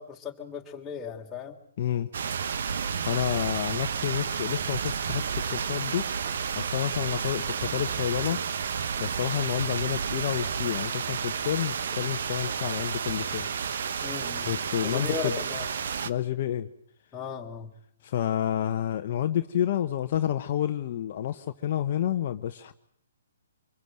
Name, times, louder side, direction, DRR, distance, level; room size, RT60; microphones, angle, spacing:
voice 1, 0.0-1.6 14.0-14.5 14.8-15.7 17.1-17.7, left 5 dB, 15° left, 0 dB, 3.3 m, -36 dB
voice 2, 1.8-2.1 3.0-6.1 6.6-8.4 9.0-13.5 14.5-15.3 16.0-16.7 18.0-22.7, left 11 dB, 45° left, 6 dB, 1.1 m, -29 dB
sound 1, 2.1-16.1, right 6 dB, 60° right, 1.2 m, -31 dB
25.5 x 22.5 x 7.8 m, 0.70 s
hypercardioid pair, 140°, 0 cm